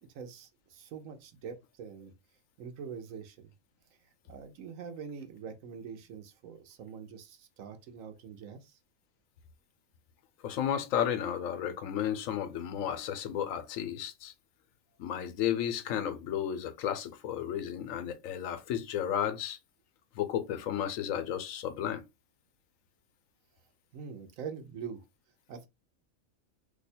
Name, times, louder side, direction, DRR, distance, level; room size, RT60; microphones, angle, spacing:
voice 1, 0.0-2.1 2.6-3.5 4.3-8.8 23.9-25.0 25.5-25.7, right 6 dB, 80° right, 1.1 m, -44 dB
voice 2, 10.4-14.3 15.0-19.6 20.2-22.0, left 10 dB, 80° left, 1.0 m, -33 dB
2.7 x 2.2 x 4.1 m
omnidirectional pair, 1.4 m